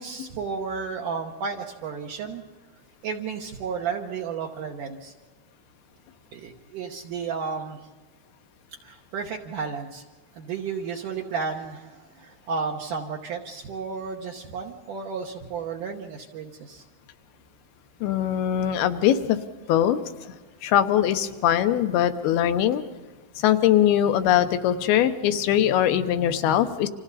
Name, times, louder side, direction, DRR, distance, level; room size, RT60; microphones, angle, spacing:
voice 1, 0.0-2.4 3.0-5.1 6.3-7.8 8.8-10.0 10.4-16.8, right 5 dB, 65° right, 0 dB, 2.4 m, -33 dB
voice 2, 18.0-19.4 19.7-20.0 20.6-22.8 23.4-26.9, left 10 dB, 80° left, 9 dB, 2.9 m, -21 dB
30.0 x 26.5 x 4.1 m, 1.4 s
omnidirectional pair, 4.6 m